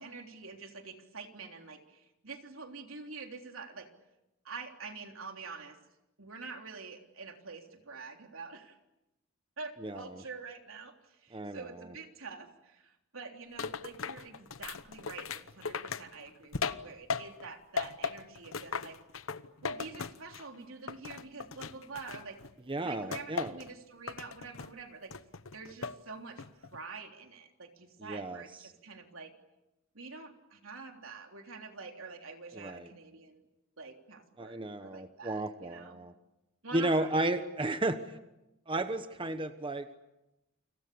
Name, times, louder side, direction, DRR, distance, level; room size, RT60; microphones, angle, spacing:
voice 1, 0.0-3.9 4.4-5.8 6.2-8.8 9.6-19.0 19.6-22.4 22.8-25.1 25.5-29.3 29.9-33.4 33.8-36.0 36.6-37.3 37.6-37.9, right 4 dB, 80° right, 4 dB, 3.5 m, -46 dB
voice 2, 11.3-11.7 22.7-23.6 28.0-28.4 32.5-32.9 34.4-36.1 36.7-38.0 38.7-39.9, right 2 dB, 25° right, 9 dB, 1.2 m, -33 dB
sound 1, 13.6-17.5 17.8-20.6 20.9-22.5 23.1-23.7 24.1-24.7 25.1-26.0 26.4-26.8, left 5 dB, 80° left, 1.0 m, -38 dB
29.5 x 26.5 x 7.0 m, 0.94 s
head